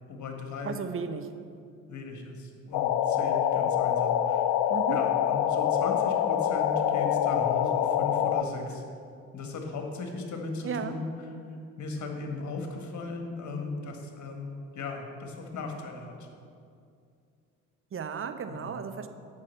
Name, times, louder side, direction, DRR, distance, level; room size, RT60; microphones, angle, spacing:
voice 1, 0.1-0.8 1.9-4.5 4.9-8.8 9.3-11.3 11.8-16.3 18.5-18.7, left 3 dB, 45° left, 3 dB, 1.8 m, -37 dB
voice 2, 0.6-1.3 4.7-5.0 10.6-11.0 17.9-19.1, right 6 dB, 30° right, 8 dB, 0.8 m, -34 dB
sound 1, 2.7-8.4, left 10 dB, 60° left, 0.6 m, -25 dB
8.4 x 6.3 x 7.6 m, 2.4 s
figure-of-eight pair, 55°, 41 cm